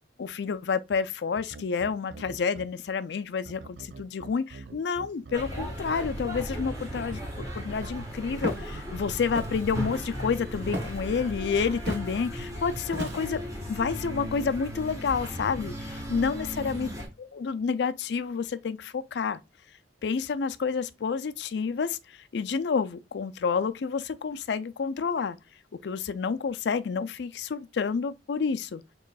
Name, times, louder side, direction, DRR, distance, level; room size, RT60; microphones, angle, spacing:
voice 1, 0.2-13.4 13.7-16.9 17.2-19.4 20.0-25.4 25.8-28.8, left 5 dB, 65° left, 0.4 m, -29 dB
sound 1, 1.4-2.7 3.4-7.5 8.2-9.9 10.6-10.9, right 3 dB, 90° right, 0.6 m, -44 dB
sound 2, 5.3-17.1, equal, 20° right, 1.3 m, -36 dB
Walk footsteps, 8.4-8.7 9.3-9.7 10.7-11.1 11.9-12.1 12.9-13.4, right 1 dB, 70° right, 1.3 m, -34 dB
6.5 x 3.0 x 2.3 m
head